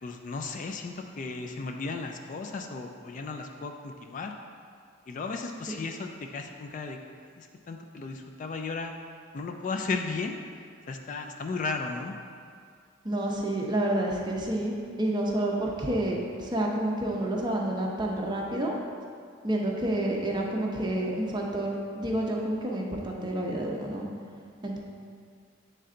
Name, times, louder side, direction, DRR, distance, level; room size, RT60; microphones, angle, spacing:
voice 1, 0.0-4.3 5.1-8.9 9.3-10.4 10.9-12.2, left 4 dB, 40° left, 4 dB, 0.3 m, -35 dB
voice 2, 13.0-18.7 19.4-24.0 24.6-24.8, right 1 dB, 20° right, -1 dB, 0.6 m, -29 dB
7.6 x 3.3 x 3.8 m, 2.2 s
head